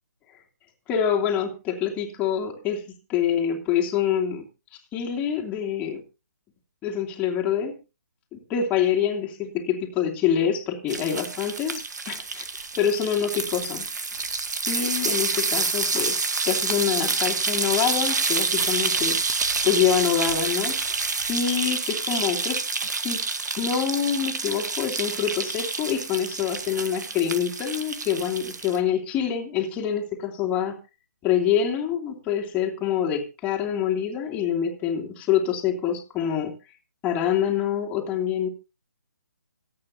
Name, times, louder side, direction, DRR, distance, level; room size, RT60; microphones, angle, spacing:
voice 1, 0.9-2.8 3.1-4.5 4.9-6.0 6.8-7.8 8.3-12.5 12.8-13.9 14.7-19.2 19.6-21.0 21.3-22.6 23.0-23.2 23.6-30.8 31.2-36.6 37.0-38.5, left 8 dB, 15° left, 0 dB, 2.9 m, -26 dB
sound 1, 10.9-28.8, right 4 dB, 70° right, 1.9 m, -28 dB
26.0 x 8.7 x 2.8 m, 0.30 s
figure-of-eight pair, 145°, 10 cm